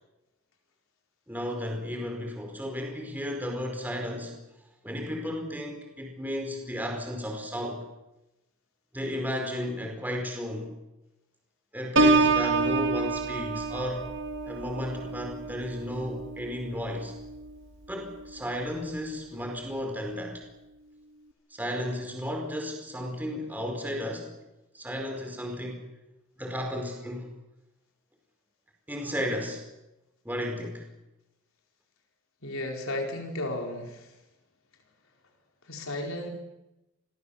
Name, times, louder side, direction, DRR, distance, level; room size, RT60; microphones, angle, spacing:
voice 1, 1.3-4.3 4.8-7.8 8.9-10.7 11.7-14.1 14.4-17.1 17.9-20.4 21.5-24.3 24.7-25.8 26.4-27.3 28.9-29.6 30.2-30.8, equal, 10° right, 2 dB, 4.8 m, -33 dB
Piano, 12.0-17.6 18.1-18.4, right 3 dB, 55° right, 2.9 m, -27 dB
voice 2, 32.4-34.0 35.7-36.3, left 1 dB, 70° left, 2 dB, 4.6 m, -33 dB
29.5 x 23.5 x 7.2 m, 0.97 s
head